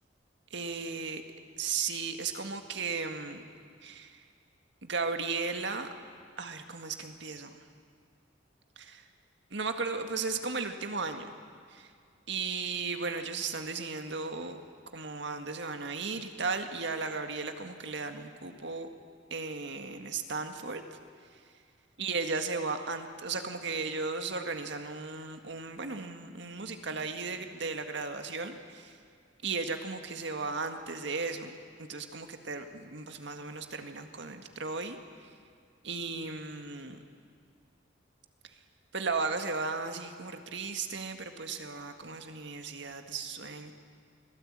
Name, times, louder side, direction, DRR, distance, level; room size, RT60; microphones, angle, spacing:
voice 1, 0.5-1.2 1.6-3.4 3.8-4.2 4.8-5.9 6.4-7.6 8.8-9.0 9.5-11.3 11.7-11.9 12.3-14.6 14.9-18.9 19.3-21.0 22.0-29.0 29.4-31.5 31.9-35.0 35.2-35.3 35.8-37.0 38.9-43.7, right 4 dB, 70° right, 6 dB, 1.9 m, -35 dB
25.0 x 17.5 x 8.9 m, 2.2 s
head